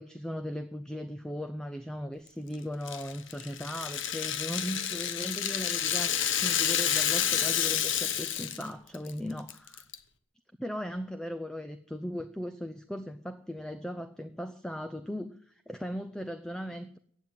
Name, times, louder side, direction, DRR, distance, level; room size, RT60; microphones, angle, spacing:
voice 1, 0.0-9.8 10.6-17.0, equal, 5° left, 10 dB, 0.6 m, -38 dB
Rattle (instrument), 2.9-8.7 8.9-9.1 9.5-10.0, left 9 dB, 60° left, 1.1 m, -29 dB
15.0 x 9.1 x 9.5 m, 0.63 s
head